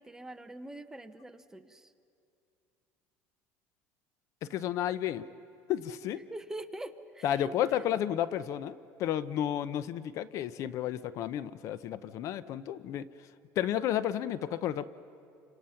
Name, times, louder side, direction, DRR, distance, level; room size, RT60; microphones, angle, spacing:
voice 1, 0.0-1.9 6.3-7.5, right 1 dB, 10° right, 9 dB, 0.9 m, -44 dB
voice 2, 4.5-5.2 5.7-6.2 7.2-13.1 13.6-14.9, left 11 dB, 55° left, 15 dB, 0.7 m, -32 dB
29.5 x 26.5 x 5.8 m, 2.6 s
cardioid pair, 130°, 6 cm